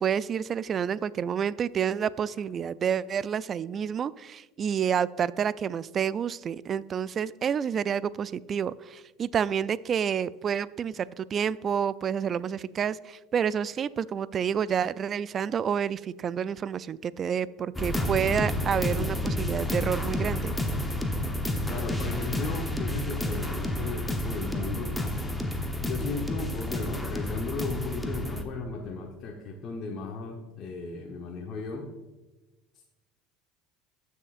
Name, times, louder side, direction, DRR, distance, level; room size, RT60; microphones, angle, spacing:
voice 1, 0.0-20.6, right 8 dB, 40° right, 19 dB, 0.3 m, -29 dB
sound 1, 17.7-28.4, left 1 dB, 10° left, 1.0 m, -30 dB
voice 2, 21.7-25.2 25.8-31.9, left 4 dB, 45° left, 0 dB, 1.1 m, -36 dB
14.5 x 6.4 x 2.5 m, 1.1 s
hypercardioid pair, 85°, 0 cm